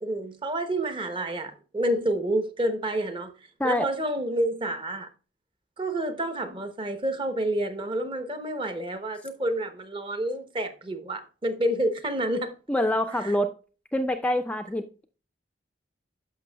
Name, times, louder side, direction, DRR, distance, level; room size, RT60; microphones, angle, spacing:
voice 1, 0.0-3.3 3.6-5.1 5.8-12.5 13.2-13.3, right 1 dB, 30° right, 0.7 m, -29 dB
voice 2, 12.7-13.5 13.9-15.0, left 1 dB, 5° left, 0.3 m, -26 dB
12.0 x 5.6 x 2.2 m
head